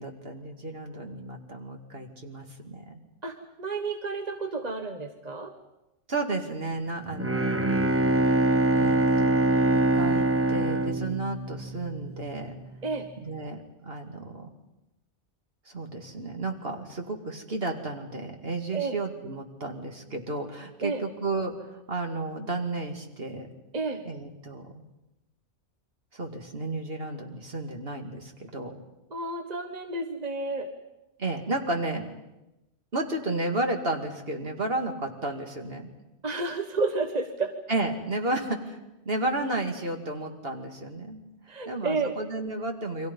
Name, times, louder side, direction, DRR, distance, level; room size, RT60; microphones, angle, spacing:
voice 1, 0.0-3.0 6.1-7.6 8.7-12.5 13.2-14.5 15.7-23.5 24.0-24.8 26.1-28.8 31.2-32.1 32.9-35.9 37.7-38.8 39.1-41.2 41.7-43.1, right 2 dB, 55° right, 4 dB, 2.6 m, -32 dB
voice 2, 3.2-5.5 12.8-13.1 18.7-19.0 20.8-21.0 23.7-24.0 29.1-30.7 36.2-37.5 41.5-42.2, right 3 dB, 35° right, 6 dB, 1.3 m, -31 dB
Bowed string instrument, 7.1-12.0, right 2 dB, 15° right, 0.7 m, -24 dB
29.5 x 24.0 x 5.5 m, 0.94 s
omnidirectional pair, 1.2 m